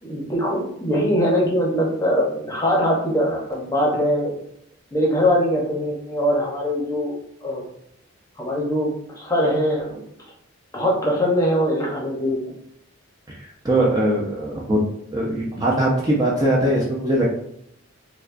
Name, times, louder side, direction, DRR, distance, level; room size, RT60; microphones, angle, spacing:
voice 1, 0.0-4.3 4.9-7.1 7.4-7.6 8.4-10.0 10.7-12.4, equal, 15° left, -2 dB, 0.7 m, -22 dB
voice 2, 13.3-14.8 15.1-17.3, right 1 dB, 20° right, -4 dB, 0.4 m, -21 dB
4.5 x 2.2 x 2.5 m, 0.73 s
head